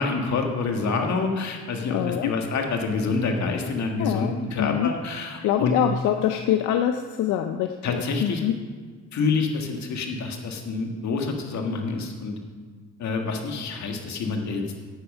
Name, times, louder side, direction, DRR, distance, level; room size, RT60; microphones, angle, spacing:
voice 1, 0.0-5.7 7.8-8.4 9.1-12.4 13.0-14.6, left 4 dB, 65° left, 3 dB, 1.9 m, -27 dB
voice 2, 1.9-2.3 4.0-4.9 5.4-8.5, left 10 dB, 90° left, 7 dB, 0.6 m, -25 dB
10.0 x 9.1 x 5.5 m, 1.5 s
cardioid pair, 90°, 30 cm